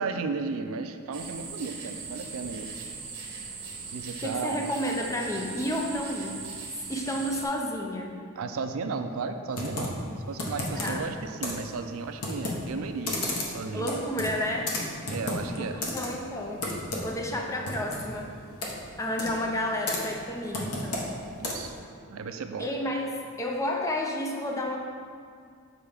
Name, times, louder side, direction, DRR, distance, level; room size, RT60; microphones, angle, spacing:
voice 1, 0.0-2.7 3.9-4.6 8.4-10.0 10.3-13.9 15.1-15.8 21.4-21.8 22.1-22.7, right 4 dB, 65° right, 7 dB, 0.4 m, -34 dB
sound 1, 1.1-7.5, right 4 dB, 80° right, 1.0 m, -40 dB
voice 2, 4.2-6.4 6.9-8.2 10.7-11.0 13.7-14.8 15.5-16.6 16.9-18.4 19.0-21.1 22.6-24.8, left 1 dB, 15° left, 0 dB, 0.5 m, -31 dB
Computer keyboard, 9.5-21.8, left 1 dB, 85° left, 0.9 m, -34 dB
7.1 x 4.4 x 3.4 m, 2.2 s
head